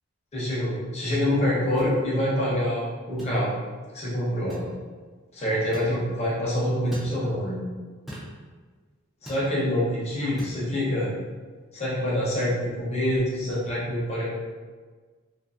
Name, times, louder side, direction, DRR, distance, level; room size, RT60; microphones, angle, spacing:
voice 1, 0.3-3.5 3.9-4.7 5.3-7.6 9.2-11.1 11.7-14.3, left 1 dB, 30° left, -7 dB, 0.8 m, -26 dB
sound 1, 1.8-1.9 3.2-3.4 4.5-4.7 5.7-5.9 6.9-7.1 8.1-8.3 9.3-9.5 10.4-10.6, equal, ahead, 0.5 m, -39 dB
2.6 x 2.5 x 2.6 m, 1.5 s
head